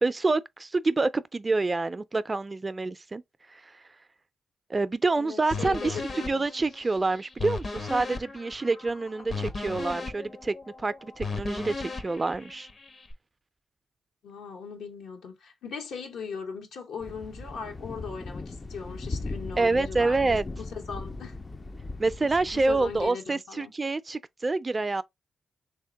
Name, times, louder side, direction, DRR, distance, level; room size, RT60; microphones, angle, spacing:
voice 1, 0.0-3.2 3.5-3.7 4.7-12.7 19.6-20.4 22.0-25.0, right 3 dB, 35° right, 0.4 m, -27 dB
voice 2, 5.1-6.5 9.3-9.5 14.2-21.3 22.2-23.7, left 5 dB, 80° left, 0.9 m, -39 dB
sound 1, 5.5-13.1, left 3 dB, 50° left, 0.7 m, -37 dB
Thunder, 17.0-23.1, left 3 dB, 35° left, 0.4 m, -38 dB
3.2 x 2.9 x 3.7 m
supercardioid pair, 50°, 0 cm